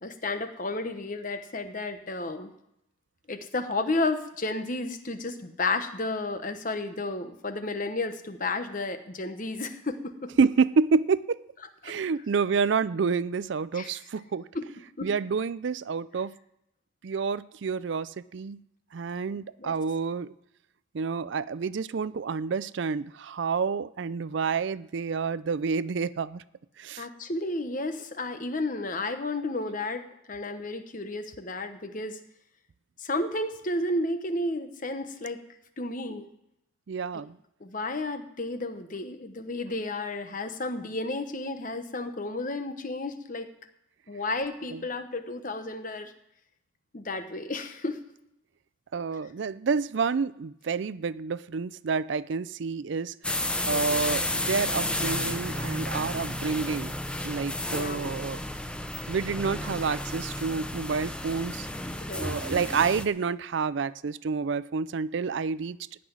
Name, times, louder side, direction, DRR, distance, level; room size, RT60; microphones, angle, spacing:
voice 1, 0.0-2.5 3.3-10.3 11.8-11.9 13.7-13.9 14.5-14.7 15.0-15.1 19.6-19.7 27.0-30.0 30.3-32.2 33.0-35.4 35.8-36.3 37.1-37.2 37.6-43.5 44.1-46.1 46.9-48.0 53.7-54.0 57.7-58.0 62.0-62.3, left 2 dB, 40° left, 8 dB, 1.1 m, -32 dB
voice 2, 10.4-11.4 11.8-14.5 15.0-16.3 17.0-18.6 18.9-20.3 20.9-26.4 26.8-27.1 36.9-37.4 44.7-44.8 48.9-56.9 57.2-58.4 59.1-61.7 62.2-65.8, right 5 dB, 60° right, 17 dB, 0.4 m, -29 dB
sound 1, 53.2-63.1, left 1 dB, 5° left, 0.6 m, -32 dB
16.0 x 6.0 x 9.4 m, 0.81 s
head